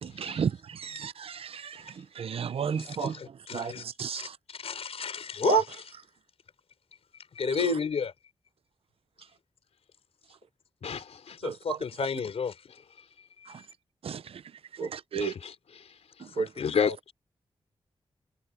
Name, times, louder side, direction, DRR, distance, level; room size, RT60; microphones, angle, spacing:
voice 1, 0.0-3.1 3.5-4.4 5.5-5.6 7.5-7.8 11.4-11.8 13.5-13.6 14.0-14.4 14.7-15.3 16.2-16.5 16.8-16.9, right 7 dB, 65° right, 0.6 m, -32 dB
voice 2, 2.6-3.8 4.1-5.6 7.3-8.1 11.4-12.6 14.8-15.3 16.3-17.0, left 6 dB, 70° left, 5.2 m, -32 dB
voice 3, 10.8-11.4 15.2-15.5 16.6-17.1, left 6 dB, 90° left, 3.7 m, -31 dB
wide cardioid pair, 170°, 11 cm